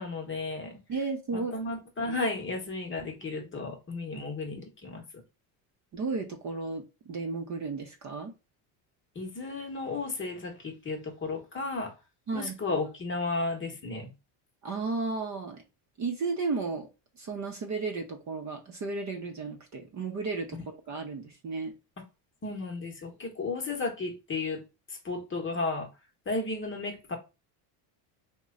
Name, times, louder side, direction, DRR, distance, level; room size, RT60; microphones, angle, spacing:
voice 1, 0.0-0.8 1.3-5.0 9.1-11.9 12.3-14.1 20.5-20.6 22.4-24.6 24.9-25.9 26.3-27.2, left 3 dB, 25° left, 0.9 m, -33 dB
voice 2, 0.9-1.5 2.1-2.2 5.9-8.3 12.3-12.8 14.6-15.6 16.0-16.9 17.2-20.6 20.9-21.7, right 4 dB, 35° right, 0.7 m, -34 dB
3.0 x 2.2 x 3.7 m
cardioid pair, 120°, 48 cm